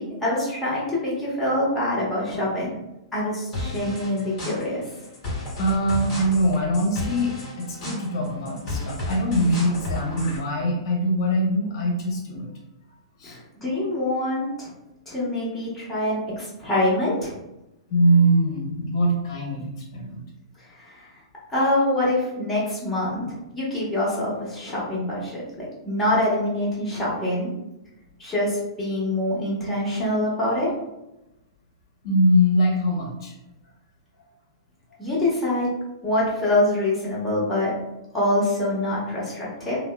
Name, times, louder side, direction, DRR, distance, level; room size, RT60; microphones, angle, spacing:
voice 1, 0.0-2.7 3.1-4.8 13.2-14.7 15.1-17.3 20.7-21.1 21.5-27.5 28.2-30.7 35.0-35.7 36.0-37.7 38.1-39.8, left 1 dB, 10° left, -8 dB, 1.3 m, -25 dB
sound 1, 3.5-10.4, left 1 dB, 35° left, 1.3 m, -33 dB
voice 2, 5.6-12.5 13.2-13.4 17.9-20.2 32.0-33.3 34.9-35.0, equal, 55° left, -1 dB, 0.8 m, -22 dB
2.9 x 2.0 x 2.2 m, 0.94 s
hypercardioid pair, 115°, 3 cm